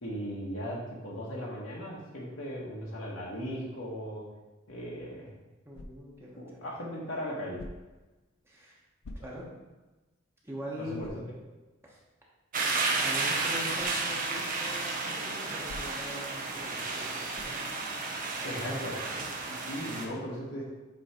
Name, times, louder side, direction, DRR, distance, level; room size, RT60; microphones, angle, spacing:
voice 1, 0.0-4.3 4.7-5.3 6.4-7.6 9.2-9.3 10.8-11.2 18.4-18.9 19.5-20.6, equal, 65° left, -5 dB, 1.2 m, -37 dB
voice 2, 5.6-6.7 8.4-8.8 9.1-9.5 10.4-11.1 11.8-12.0 12.9-17.5 18.4-18.9, equal, 10° right, -4 dB, 1.1 m, -42 dB
sound 1, 5.7-6.3 7.5-8.0 9.0-9.6 10.1-10.2 11.0-11.3 13.7-14.0 15.6-16.2 17.3-17.7, left 1 dB, 90° left, 0.6 m, -46 dB
sound 2, 12.5-20.1, right 3 dB, 40° right, 0.8 m, -32 dB
7.7 x 3.1 x 4.4 m, 1.1 s
head